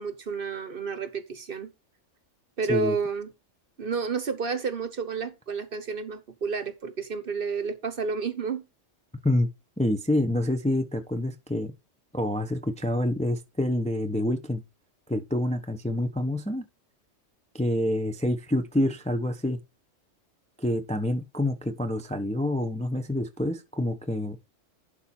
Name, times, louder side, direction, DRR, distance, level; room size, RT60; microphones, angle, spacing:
voice 1, 0.0-1.7 2.6-3.3 3.8-8.6, right 5 dB, 50° right, 1.1 m, -30 dB
voice 2, 9.8-11.7 12.1-14.6 15.1-16.7 17.5-19.6 20.6-24.4, left 1 dB, 5° left, 0.6 m, -27 dB
11.5 x 4.5 x 4.3 m
omnidirectional pair, 1.3 m